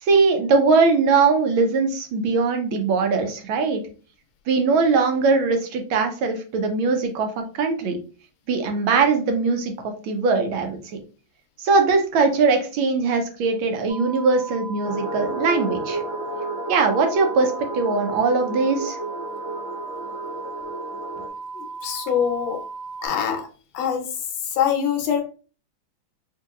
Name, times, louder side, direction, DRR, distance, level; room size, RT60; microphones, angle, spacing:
voice 1, 0.0-3.8 4.5-8.0 8.5-9.7 10.0-10.8 11.6-16.0 16.7-19.0, right 4 dB, 90° right, 5 dB, 1.6 m, -21 dB
sound 1, 13.9-23.1, right 4 dB, 35° right, 1.0 m, -36 dB
sound 2, 14.8-21.3, right 2 dB, 40° left, 1.4 m, -32 dB
voice 2, 21.5-22.6 23.0-23.5 23.7-24.1 24.4-25.2, left 8 dB, 75° left, 3 dB, 1.5 m, -24 dB
4.3 x 2.7 x 2.4 m, 0.37 s
omnidirectional pair, 2.2 m